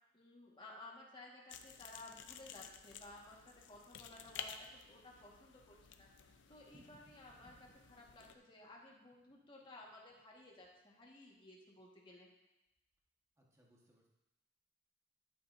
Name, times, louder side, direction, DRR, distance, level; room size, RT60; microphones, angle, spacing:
voice 1, 0.1-12.3, left 2 dB, 25° left, -3 dB, 1.6 m, -57 dB
sound 1, 1.5-8.4, left 7 dB, 70° left, 0.5 m, -53 dB
Thunder, 5.2-11.1 11.4-11.5 11.8-11.9 12.1-12.2 12.8-13.1, right 1 dB, 35° right, 0.8 m, -70 dB
voice 2, 13.4-14.1, equal, 15° right, -3 dB, 1.4 m, -71 dB
11.5 x 7.5 x 2.7 m, 0.97 s
head